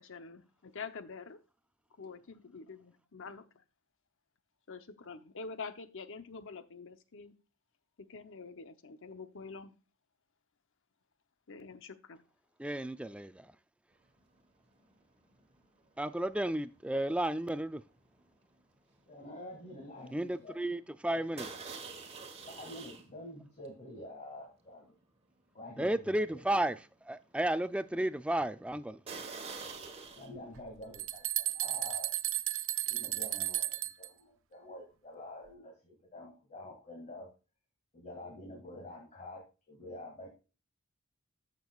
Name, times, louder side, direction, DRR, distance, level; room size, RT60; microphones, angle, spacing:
voice 1, 0.0-1.4 2.0-3.6 4.7-7.3 8.0-9.7 11.5-12.2, left 4 dB, 65° left, 0.8 m, -46 dB
voice 2, 12.6-13.4 16.0-17.8 20.1-21.5 25.8-26.8 27.1-29.0, right 1 dB, 5° right, 0.4 m, -33 dB
sound 1, 14.2-14.5 14.7-19.3 19.6-19.9 20.3-20.4 21.4-23.1 23.6-23.7 24.4-24.5 25.0-25.1 29.1-30.3, right 4 dB, 30° right, 1.4 m, -46 dB
voice 3, 19.1-20.6 22.5-25.0 25.5-26.4 30.1-32.1 32.9-37.3 37.9-40.3, left 1 dB, 35° left, 2.1 m, -48 dB
sound 2, 30.5-34.1, right 14 dB, 65° right, 0.5 m, -34 dB
14.0 x 6.1 x 2.4 m
head